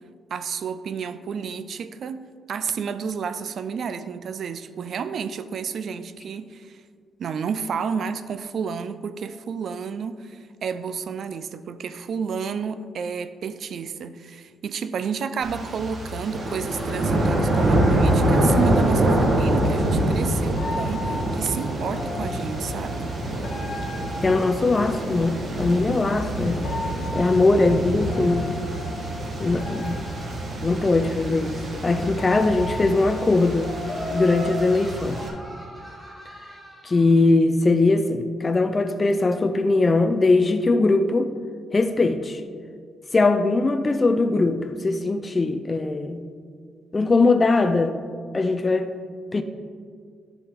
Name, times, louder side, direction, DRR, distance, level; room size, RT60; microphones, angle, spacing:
voice 1, 0.3-6.8 7.2-23.1 32.0-32.1, right 6 dB, 55° right, 13 dB, 0.4 m, -31 dB
sound 1, 15.4-35.3, right 1 dB, 40° right, 1.3 m, -25 dB
sound 2, 20.6-25.3 26.6-30.8 31.6-31.7 32.2-36.6 36.9-37.2, left 2 dB, 80° left, 1.5 m, -37 dB
voice 2, 24.2-26.7 27.1-28.6 29.4-30.1 30.6-33.7 34.1-35.2 36.8-41.3 41.7-42.4 43.1-46.2 46.9-48.0 48.3-48.9 49.3-49.4, left 3 dB, 20° left, 7 dB, 0.4 m, -21 dB
Laughter, 33.8-37.0, right 1 dB, 10° right, 1.4 m, -36 dB
11.0 x 6.2 x 3.7 m, 2.1 s
cardioid pair, 140°, 0 cm